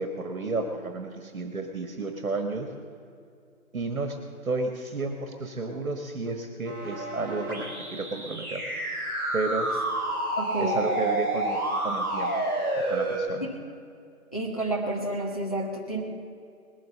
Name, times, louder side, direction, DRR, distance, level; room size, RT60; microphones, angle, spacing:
voice 1, 0.0-2.7 3.7-4.2 4.4-7.6 7.9-8.6 9.3-9.7 10.6-12.3 12.9-13.5, right 3 dB, 70° right, 4 dB, 1.6 m, -31 dB
sound 1, 6.6-13.2, right 1 dB, 5° left, 2.2 m, -29 dB
voice 2, 10.4-10.8 13.4-13.5 14.3-16.0, right 2 dB, 25° left, -3 dB, 1.1 m, -30 dB
19.5 x 8.0 x 6.7 m, 2.4 s
figure-of-eight pair, 180°, 43 cm